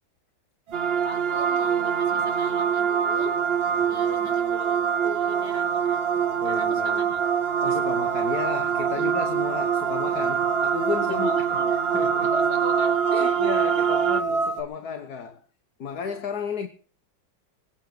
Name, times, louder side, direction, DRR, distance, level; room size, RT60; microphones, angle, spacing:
sound 1, 0.7-14.2, right 8 dB, 60° right, 0.6 m, -24 dB
sound 2, 0.7-14.6, right 3 dB, 90° right, 2.2 m, -32 dB
voice 1, 1.0-3.4 3.9-6.0 6.4-7.2 8.9-9.1 11.0-11.7 12.2-13.6, left 2 dB, 30° left, 4.8 m, -39 dB
voice 2, 6.3-7.1 7.6-11.3 11.9-12.3 13.2-15.4 15.8-16.7, left 6 dB, 55° left, 1.8 m, -33 dB
24.5 x 8.9 x 5.0 m
omnidirectional pair, 2.1 m